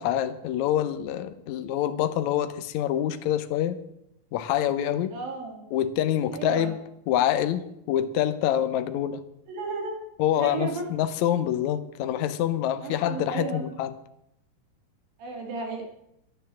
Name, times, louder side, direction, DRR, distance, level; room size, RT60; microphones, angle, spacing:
voice 1, 0.0-3.8 4.3-5.2 5.7-6.8 7.1-9.2 10.2-13.9, left 11 dB, 75° left, 11 dB, 1.8 m, -26 dB
voice 2, 5.1-5.6 6.3-6.7 9.5-10.0 10.4-10.8 12.8-13.7 15.2-15.8, right 4 dB, 85° right, 3 dB, 4.3 m, -33 dB
11.5 x 10.5 x 7.6 m, 0.80 s
omnidirectional pair, 4.0 m